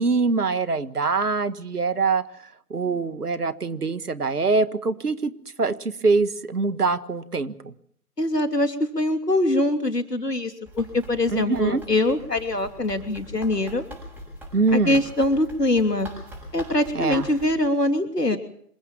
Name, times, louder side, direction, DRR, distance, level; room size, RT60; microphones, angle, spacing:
voice 1, 0.0-2.2 2.7-5.3 5.6-7.7 11.3-11.8 14.5-15.0 16.9-17.3, right 4 dB, 70° right, 13 dB, 1.8 m, -23 dB
voice 2, 8.2-13.8 14.7-16.1 16.5-18.4, left 1 dB, 85° left, 7 dB, 3.2 m, -23 dB
Run, 10.7-17.6, equal, 5° right, 6.7 m, -42 dB
27.0 x 16.0 x 7.3 m, 0.65 s
figure-of-eight pair, 140°, 47 cm